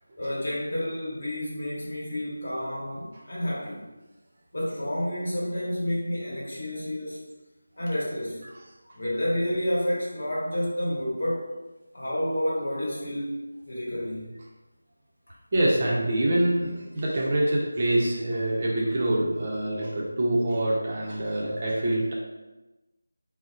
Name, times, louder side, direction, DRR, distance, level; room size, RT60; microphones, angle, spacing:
voice 1, 0.2-3.8 4.5-7.2 7.8-8.4 8.9-11.5 11.9-13.4 13.6-14.3, equal, 55° left, -6 dB, 1.1 m, -30 dB
voice 2, 15.5-22.1, right 1 dB, 35° right, -4 dB, 0.5 m, -25 dB
3.9 x 2.1 x 2.5 m, 1.1 s
figure-of-eight pair, 165°, 0 cm